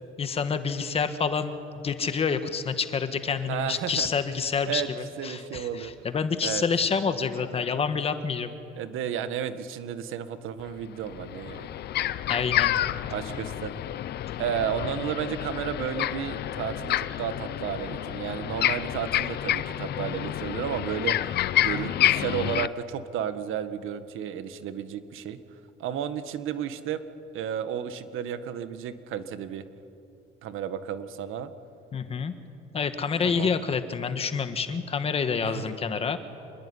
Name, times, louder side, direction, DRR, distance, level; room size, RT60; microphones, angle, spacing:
voice 1, 0.2-8.5 12.3-12.8 31.9-32.3 32.7-36.2, left 5 dB, 30° left, 9 dB, 1.5 m, -28 dB
voice 2, 3.5-4.1 4.6-4.9 5.2-5.9 6.4-6.6 8.8-11.8 13.1-13.7 14.4-21.2 21.6-25.4 25.8-27.0 27.3-29.6 30.4-31.5 33.2-33.5 35.4-35.6, right 9 dB, 75° right, 10 dB, 1.7 m, -32 dB
sound 1, 11.1-22.7, left 12 dB, 50° left, 0.7 m, -29 dB
26.5 x 22.0 x 9.9 m, 2.7 s
cardioid pair, 180°, 21 cm